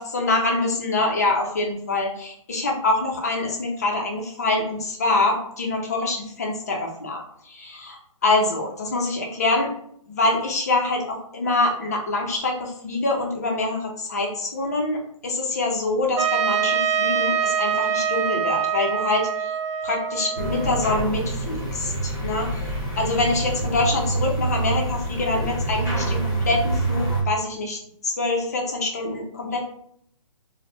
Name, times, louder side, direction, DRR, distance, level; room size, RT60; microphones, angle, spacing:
voice 1, 0.0-9.7 10.1-19.5 19.8-22.6 23.0-29.6, left 2 dB, 30° left, 0 dB, 0.5 m, -25 dB
Trumpet, 16.2-21.0, right 7 dB, 50° right, 0.4 m, -24 dB
sound 1, 20.3-27.2, right 2 dB, 5° left, 0.8 m, -26 dB
2.9 x 2.1 x 3.2 m, 0.67 s
hypercardioid pair, 175°, 18 cm